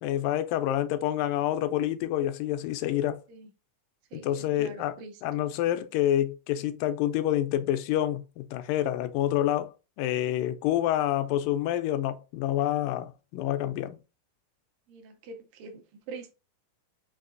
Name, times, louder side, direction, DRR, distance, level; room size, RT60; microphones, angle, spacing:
voice 1, 0.0-3.2 4.1-5.0 5.2-14.0, left 12 dB, 85° left, 2.1 m, -28 dB
voice 2, 4.1-5.2 14.9-16.3, right 3 dB, 80° right, 2.3 m, -44 dB
5.8 x 2.8 x 2.5 m
omnidirectional pair, 3.9 m